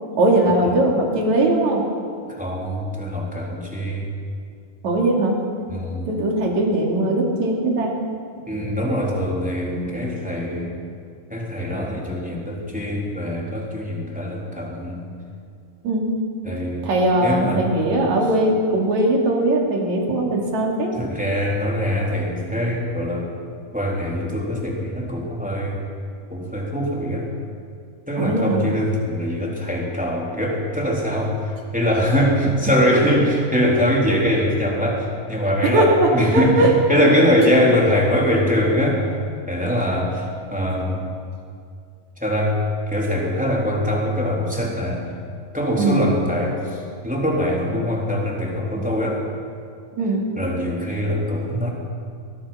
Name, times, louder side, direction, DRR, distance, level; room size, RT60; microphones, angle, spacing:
voice 1, 0.2-1.9 4.8-5.4 6.1-7.9 15.8-16.2 16.8-20.9 28.2-28.6 35.6-36.1 36.3-37.0 45.8-46.1 50.0-50.3, right 1 dB, 55° right, 0 dB, 3.6 m, -20 dB
voice 2, 2.3-4.1 5.7-6.3 8.5-10.7 11.3-15.0 16.4-16.9 17.2-17.7 20.9-23.3 23.7-25.8 26.3-27.3 28.1-39.0 39.5-41.1 42.2-42.5 42.9-45.0 45.5-49.2 50.3-51.7, equal, ahead, -3 dB, 3.1 m, -22 dB
23.0 x 20.0 x 5.8 m, 2.3 s
omnidirectional pair, 4.3 m